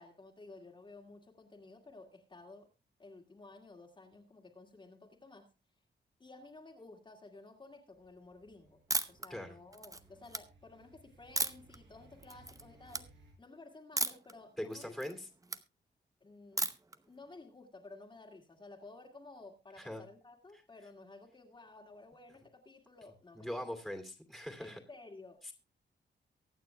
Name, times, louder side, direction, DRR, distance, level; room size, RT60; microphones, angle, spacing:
voice 1, 0.0-2.7 3.0-5.5 6.2-8.8 9.1-13.1 13.4-14.9 16.2-16.7 17.1-23.6 24.6-25.4, left 3 dB, 25° left, 2.1 m, -54 dB
sound 1, 7.9-13.3, right 2 dB, 70° right, 7.4 m, -63 dB
sound 2, 8.9-9.3 9.7-10.4 11.4-11.8 12.2-12.6 12.9-13.0 14.0-14.3 14.7-15.6 16.6-16.9, right 3 dB, 20° right, 0.8 m, -34 dB
voice 2, 14.6-15.3 19.8-20.0 23.3-24.8 25.4-25.5, left 1 dB, ahead, 2.5 m, -41 dB
23.5 x 9.3 x 2.2 m
wide cardioid pair, 150°, 19 cm